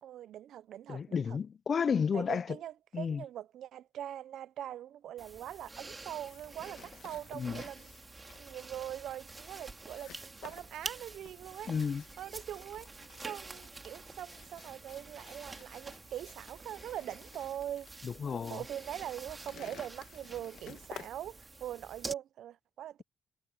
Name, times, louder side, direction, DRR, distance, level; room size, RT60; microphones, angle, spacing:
voice 1, 0.0-1.4 2.1-11.7 12.2-12.9 13.2-23.0, right 11 dB, 75° right, 0.6 m, -43 dB
voice 2, 0.9-2.6 2.9-3.2 7.3-7.6 11.7-12.0 18.0-18.6, left 6 dB, 50° left, 0.4 m, -32 dB
sound 1, 5.2-22.1, right 3 dB, 25° right, 3.1 m, -48 dB
sound 2, 6.2-21.1, left 10 dB, 70° left, 1.5 m, -55 dB
cardioid pair, 75°, 0 cm